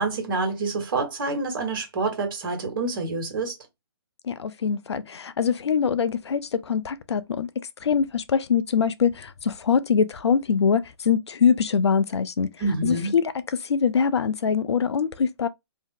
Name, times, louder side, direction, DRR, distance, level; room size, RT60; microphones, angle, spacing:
voice 1, 0.0-3.5 12.6-13.1, right 3 dB, 50° right, 1.2 m, -27 dB
voice 2, 4.3-7.5 7.8-12.5 12.8-13.2 13.6-15.5, left 6 dB, 80° left, 0.5 m, -23 dB
2.7 x 2.0 x 3.6 m
hypercardioid pair, 150°, 14 cm